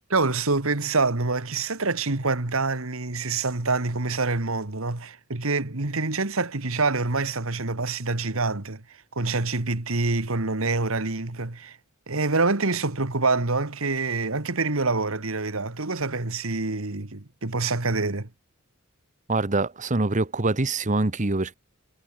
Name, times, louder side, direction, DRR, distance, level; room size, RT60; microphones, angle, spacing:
voice 1, 0.1-8.8 9.2-11.8 12.1-18.3, right 3 dB, 65° right, 1.8 m, -26 dB
voice 2, 19.3-21.5, right 2 dB, 35° right, 1.2 m, -24 dB
head